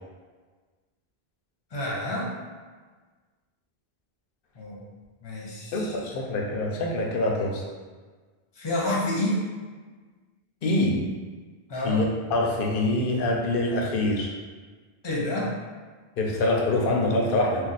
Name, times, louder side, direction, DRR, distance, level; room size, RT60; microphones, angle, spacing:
voice 1, 1.7-2.3 4.6-4.8 5.2-5.9 8.6-9.4 11.7-12.0 15.0-15.5, left 1 dB, 30° left, -5 dB, 0.7 m, -28 dB
voice 2, 5.7-7.6 8.9-9.0 10.6-11.0 11.8-14.3 16.2-17.7, left 2 dB, 65° left, 0 dB, 0.7 m, -25 dB
2.4 x 2.3 x 4.0 m, 1.4 s
omnidirectional pair, 1.0 m